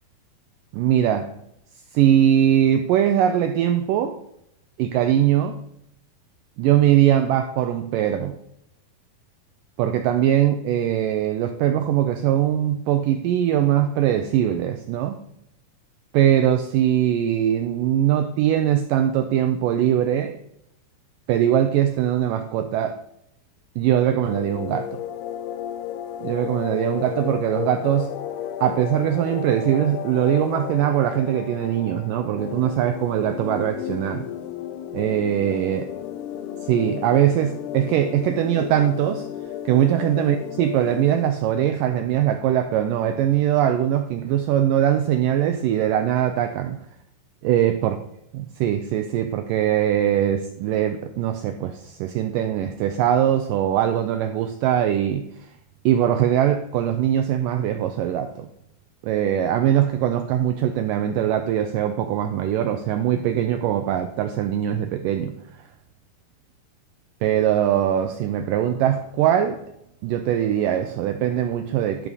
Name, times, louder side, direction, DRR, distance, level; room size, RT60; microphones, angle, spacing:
voice 1, 0.7-1.3 1.9-4.2 4.8-5.6 6.6-8.3 9.8-15.2 16.1-20.3 21.3-23.0 23.8-24.9 26.2-28.1 28.6-34.3 34.9-35.9 36.6-39.3 39.7-46.8 47.4-48.0 48.3-55.5 55.9-58.5 59.0-65.4 67.2-69.6 70.0-72.1, right 11 dB, 90° right, 7 dB, 1.9 m, -21 dB
sound 1, 24.2-41.3, left 11 dB, 90° left, 2.6 m, -33 dB
12.0 x 6.2 x 4.1 m, 0.77 s
omnidirectional pair, 4.5 m